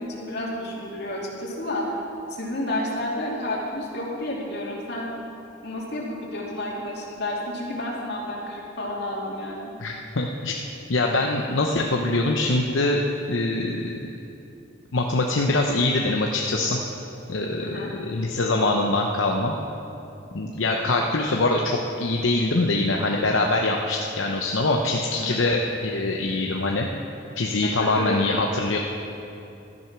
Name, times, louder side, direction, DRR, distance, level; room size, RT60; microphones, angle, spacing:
voice 1, 0.0-2.0 2.3-5.1 5.6-9.7 17.6-17.9 25.2-25.4 27.6-28.3, left 1 dB, 55° left, -4 dB, 2.7 m, -30 dB
voice 2, 9.8-10.5 10.9-13.0 13.3-14.0 14.9-16.8 17.3-19.5 20.3-26.9 27.4-28.8, left 2 dB, 75° left, 0 dB, 0.8 m, -23 dB
13.5 x 10.5 x 6.0 m, 2.8 s
head